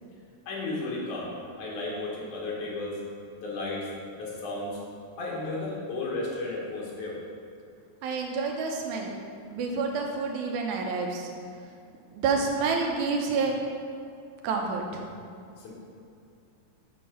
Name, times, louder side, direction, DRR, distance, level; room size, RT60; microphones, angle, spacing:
voice 1, 0.5-1.3 1.6-3.0 3.4-3.8 4.2-4.8 5.2-7.2 15.6-15.7, left 2 dB, 85° left, -4 dB, 3.1 m, -33 dB
voice 2, 8.0-9.1 9.5-11.3 12.1-13.6 14.4-15.1, right 4 dB, 75° right, 1 dB, 2.2 m, -28 dB
7.4 x 4.5 x 6.9 m, 2.5 s
omnidirectional pair, 3.5 m